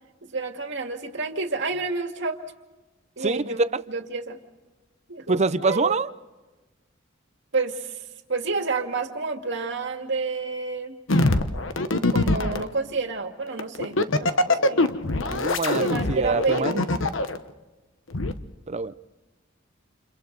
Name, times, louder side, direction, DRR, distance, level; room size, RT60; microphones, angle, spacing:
voice 1, 0.2-2.4 3.2-3.6 3.9-4.4 5.1-6.0 7.5-8.0 8.3-11.0 12.1-14.9 15.8-16.9, right 3 dB, 65° right, 2.1 m, -29 dB
voice 2, 3.2-3.8 5.3-6.1 15.3-16.8 18.7-18.9, right 3 dB, 35° right, 0.7 m, -25 dB
sound 1, 11.1-12.6 13.6-17.4 18.1-18.3, left 2 dB, 75° left, 1.2 m, -23 dB
29.5 x 29.0 x 4.0 m
head